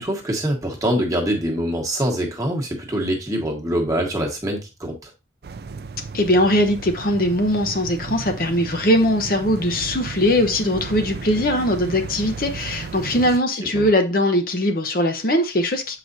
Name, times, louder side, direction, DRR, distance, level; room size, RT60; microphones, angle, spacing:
voice 1, 0.0-5.1 13.7-13.9, right 1 dB, 20° right, 1.2 m, -24 dB
sound 1, 5.4-13.4, right 4 dB, 55° right, 0.4 m, -34 dB
voice 2, 6.1-16.0, left 1 dB, 50° left, 0.8 m, -20 dB
7.6 x 4.9 x 2.7 m
head